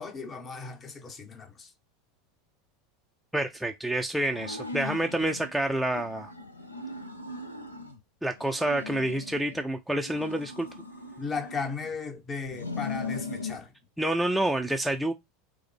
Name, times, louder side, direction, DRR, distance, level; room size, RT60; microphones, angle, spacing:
voice 1, 0.0-1.7 11.2-13.7, left 4 dB, 30° left, 0.8 m, -36 dB
voice 2, 3.3-6.3 8.2-10.7 14.0-15.1, right 1 dB, ahead, 0.4 m, -28 dB
sound 1, 4.3-5.5 5.9-8.0 8.4-9.6 10.0-12.0 12.4-13.6, left 3 dB, 85° left, 0.5 m, -39 dB
4.7 x 2.1 x 3.3 m
figure-of-eight pair, 80°, 0 cm